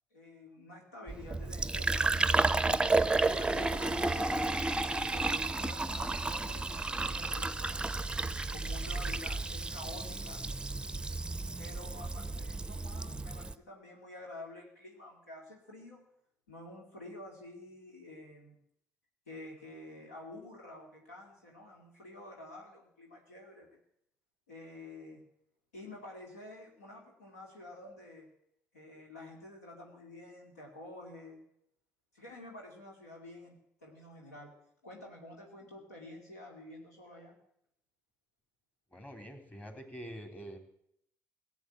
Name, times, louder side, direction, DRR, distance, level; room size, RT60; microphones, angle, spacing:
voice 1, 0.1-2.8 3.3-4.6 5.1-7.9 8.5-10.4 11.6-16.0 16.5-18.6 19.3-23.8 24.5-25.2 25.7-28.3 28.7-31.4 32.1-34.5 34.8-37.4, left 2 dB, 85° left, 0 dB, 2.5 m, -49 dB
Fill (with liquid), 1.1-13.5, right 3 dB, 10° right, 0.6 m, -32 dB
voice 2, 38.9-40.6, equal, 20° left, 6 dB, 3.2 m, -45 dB
17.0 x 8.1 x 8.8 m, 0.74 s
figure-of-eight pair, 50°, 8 cm